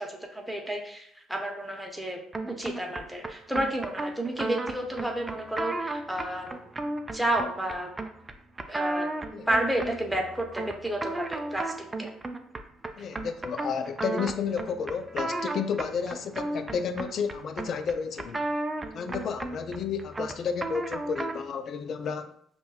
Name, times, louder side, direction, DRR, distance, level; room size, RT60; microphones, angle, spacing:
voice 1, 0.0-2.2 2.5-6.7 7.1-7.9 8.7-9.1 9.5-11.7 12.0-12.1, right 1 dB, 5° right, 1 dB, 0.9 m, -31 dB
sound 1, 2.3-21.5, right 2 dB, 25° right, 0.4 m, -35 dB
voice 2, 13.0-18.5 18.9-22.3, left 6 dB, 55° left, 9 dB, 0.4 m, -32 dB
5.4 x 2.3 x 2.3 m, 0.66 s
hypercardioid pair, 55°, 0 cm